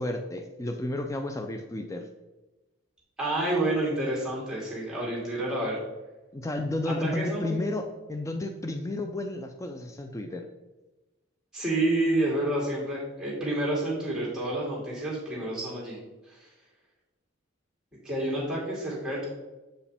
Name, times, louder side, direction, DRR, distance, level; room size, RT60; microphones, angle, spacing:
voice 1, 0.0-2.0 6.3-10.4, left 1 dB, 15° left, 5 dB, 0.3 m, -32 dB
voice 2, 3.2-5.8 6.9-7.6 11.5-16.0 16.3-16.5 18.0-19.3, right 1 dB, 5° right, -6 dB, 2.1 m, -29 dB
7.7 x 4.9 x 3.4 m, 1.1 s
head